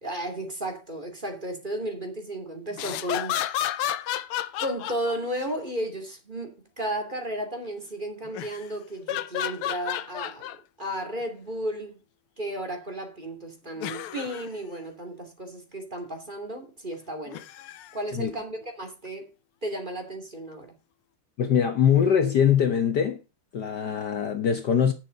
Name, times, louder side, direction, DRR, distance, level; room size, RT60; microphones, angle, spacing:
voice 1, 0.0-3.4 4.6-10.5 10.8-12.0 12.4-17.5 17.9-19.3 19.6-20.8, right 1 dB, 20° right, 2.6 m, -34 dB
sound 1, 2.7-5.5 8.3-8.6 9.1-10.6 11.2-11.3 13.8-14.5 17.3-18.0 19.1-19.2, left 12 dB, 90° left, 1.7 m, -32 dB
voice 2, 21.4-23.2 23.5-24.9, left 8 dB, 55° left, 1.5 m, -22 dB
11.0 x 6.7 x 5.2 m
omnidirectional pair, 2.4 m